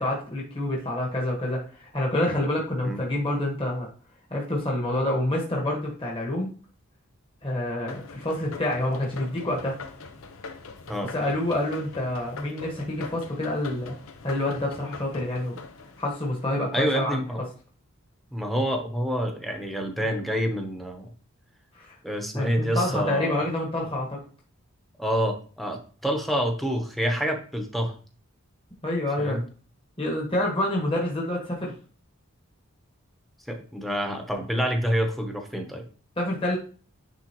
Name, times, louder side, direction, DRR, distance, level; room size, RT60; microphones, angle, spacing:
voice 1, 0.0-3.9 4.3-6.5 7.4-9.8 11.0-13.9 14.2-15.6 16.0-17.2 21.7-22.0 22.3-24.2 28.8-29.4 30.0-31.7 36.2-36.6, left 1 dB, 25° left, -3 dB, 1.5 m, -27 dB
sound 1, 7.9-17.0, left 4 dB, 80° left, 0.8 m, -43 dB
voice 2, 10.9-11.3 16.7-17.4 18.3-21.1 22.0-23.4 25.0-27.9 29.2-29.4 33.5-35.9, equal, ahead, 3 dB, 0.9 m, -27 dB
10.0 x 3.7 x 3.0 m, 0.40 s
head